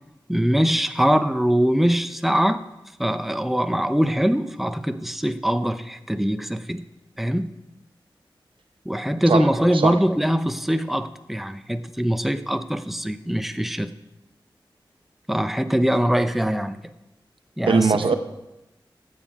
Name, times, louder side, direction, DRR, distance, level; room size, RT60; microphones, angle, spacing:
voice 1, 0.3-2.6 3.0-6.8 7.2-7.5 8.9-13.9 15.3-16.8 17.6-18.1, equal, ahead, 10 dB, 0.7 m, -22 dB
voice 2, 9.3-10.0 17.7-18.1, right 5 dB, 90° right, 8 dB, 0.8 m, -21 dB
14.0 x 7.7 x 4.8 m, 0.94 s
cardioid pair, 45°, 9 cm